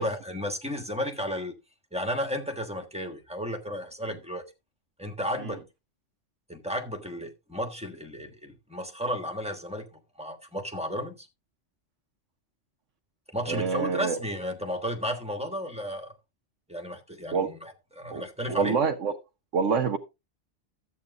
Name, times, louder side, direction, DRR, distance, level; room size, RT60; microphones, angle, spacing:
voice 1, 0.0-1.5 1.9-4.4 5.0-5.6 6.5-9.9 10.2-11.3 13.3-16.2 16.7-18.8, equal, 5° right, 1.3 m, -33 dB
voice 2, 13.5-14.2 17.3-17.5 18.1-19.1 19.5-20.0, right 5 dB, 90° right, 1.2 m, -26 dB
13.5 x 8.4 x 2.6 m
omnidirectional pair, 1.2 m